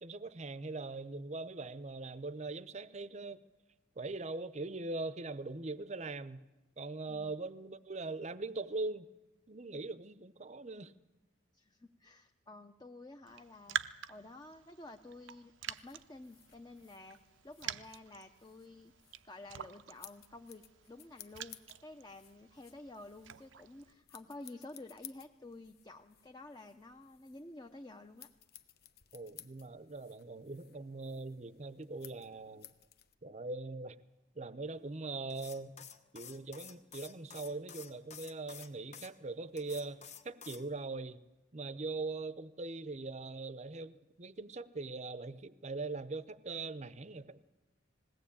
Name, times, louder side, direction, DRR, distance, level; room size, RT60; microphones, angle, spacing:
voice 1, 0.0-3.4 4.0-6.4 6.8-9.1 9.5-10.9 29.1-32.7 33.2-34.0 34.4-41.2 41.5-47.4, right 3 dB, 35° right, 0.7 m, -41 dB
voice 2, 11.5-17.2 17.4-18.9 19.2-28.3, left 2 dB, 20° left, 0.8 m, -51 dB
Raindrop, 13.3-23.9, right 9 dB, 80° right, 0.7 m, -46 dB
sound 1, 15.8-33.1, left 11 dB, 55° left, 0.9 m, -59 dB
sound 2, 35.3-39.1 39.6-40.6, left 7 dB, 35° left, 1.2 m, -51 dB
20.5 x 17.5 x 8.6 m
head